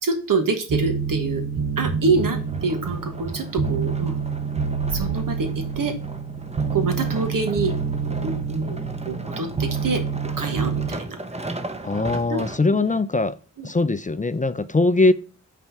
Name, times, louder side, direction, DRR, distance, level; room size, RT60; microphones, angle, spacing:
voice 1, 0.0-1.4 1.8-4.2 4.9-5.9 6.7-7.7 8.2-11.2 12.3-12.4 12.7-12.8 13.6-13.7, right 3 dB, 85° right, 1.3 m, -26 dB
sound 1, 0.7-10.9, right 6 dB, 65° right, 0.9 m, -28 dB
sound 2, 1.8-5.2 5.7-5.8, right 2 dB, 45° right, 2.6 m, -34 dB
sound 3, 2.0-13.0 13.7-13.8, right 2 dB, 20° right, 0.9 m, -37 dB
voice 2, 11.8-13.4 13.6-15.1, left 3 dB, 25° left, 0.4 m, -21 dB
5.6 x 4.2 x 5.6 m
cardioid pair, 55°, 32 cm